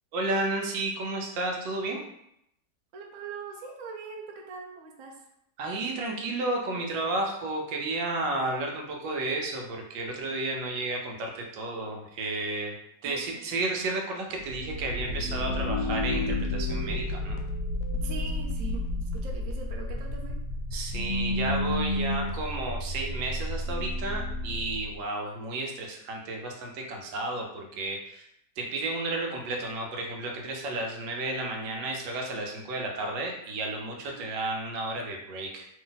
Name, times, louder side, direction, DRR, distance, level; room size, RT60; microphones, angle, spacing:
voice 1, 0.1-2.0 5.6-12.7 13.0-17.4 20.7-28.2 28.6-35.7, right 2 dB, 85° right, 1 dB, 1.4 m, -32 dB
voice 2, 2.9-5.2 13.0-13.6 17.9-20.4 34.1-34.3, right 5 dB, 65° right, 0 dB, 0.9 m, -42 dB
sound 1, 14.3-25.0, left 1 dB, 75° left, 0.7 m, -31 dB
3.1 x 2.7 x 3.8 m, 0.78 s
omnidirectional pair, 1.9 m